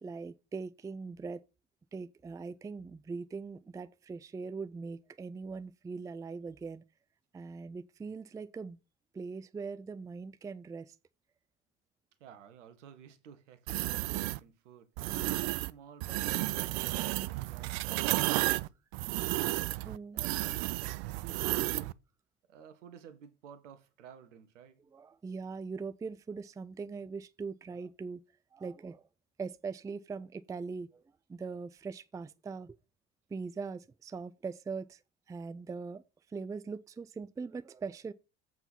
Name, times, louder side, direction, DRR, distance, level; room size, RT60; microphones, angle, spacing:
voice 1, 0.0-1.4 1.9-6.8 7.3-8.8 9.1-11.0 15.1-15.5 19.8-20.2 24.9-28.2 28.5-29.0 29.4-31.0 31.3-32.8 33.3-35.0 35.3-36.0 36.3-38.1, right 4 dB, 10° right, 0.4 m, -41 dB
voice 2, 12.2-18.7 19.7-21.0 21.2-22.0 22.5-24.8, right 8 dB, 75° right, 1.3 m, -54 dB
sound 1, 13.7-14.4 15.0-15.7 16.0-21.9, right 20 dB, 60° right, 0.5 m, -32 dB
7.7 x 4.7 x 5.7 m
hypercardioid pair, 70°, 37 cm